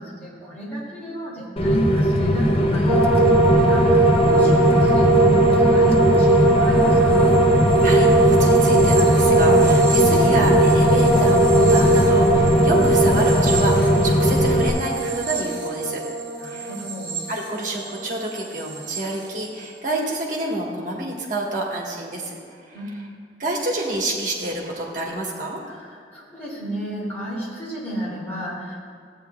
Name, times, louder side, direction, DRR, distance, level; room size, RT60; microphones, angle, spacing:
voice 1, 0.0-7.4 16.4-17.2 22.7-23.2 25.6-28.9, right 1 dB, 10° left, -8 dB, 2.3 m, -31 dB
Rain, 1.6-14.7, equal, 35° left, 0.5 m, -19 dB
sound 1, 2.9-18.1 18.4-19.0, right 2 dB, 25° right, 2.0 m, -20 dB
voice 2, 7.8-16.0 16.5-16.7 17.3-22.3 22.7-22.8 23.4-25.6, right 1 dB, 45° right, -2 dB, 1.3 m, -27 dB
14.0 x 8.5 x 2.3 m, 2.2 s
head